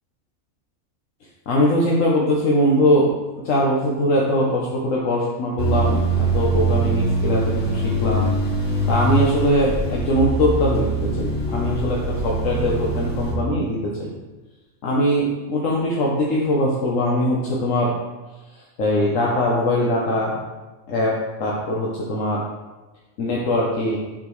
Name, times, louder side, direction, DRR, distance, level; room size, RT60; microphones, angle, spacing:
voice 1, 1.5-3.1 3.4-8.3 8.9-14.1 14.8-17.9 18.5-20.4 20.9-22.4 23.2-24.0, left 1 dB, 85° left, -4 dB, 1.2 m, -21 dB
sound 1, 5.6-13.3, right 2 dB, 25° left, 1.9 m, -23 dB
6.3 x 5.8 x 3.1 m, 1.2 s
omnidirectional pair, 1.3 m